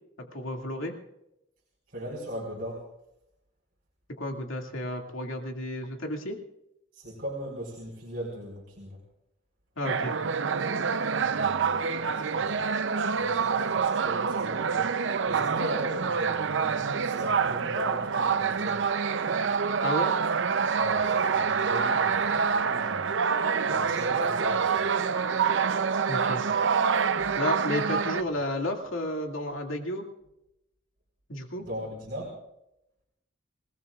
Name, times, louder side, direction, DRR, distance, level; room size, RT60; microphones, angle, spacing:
voice 1, 0.2-0.9 4.2-6.4 9.8-10.2 19.8-20.1 26.1-26.4 27.4-30.0 31.3-31.6, left 1 dB, 85° left, 2 dB, 2.3 m, -32 dB
voice 2, 1.9-2.8 6.9-9.0 11.2-12.6 13.2-14.9 15.3-18.9 20.7-23.1 23.6-24.8 31.6-32.4, equal, 50° right, -3 dB, 4.5 m, -39 dB
sound 1, 9.8-28.2, right 6 dB, 65° right, 0.6 m, -26 dB
27.5 x 19.0 x 2.4 m, 0.84 s
head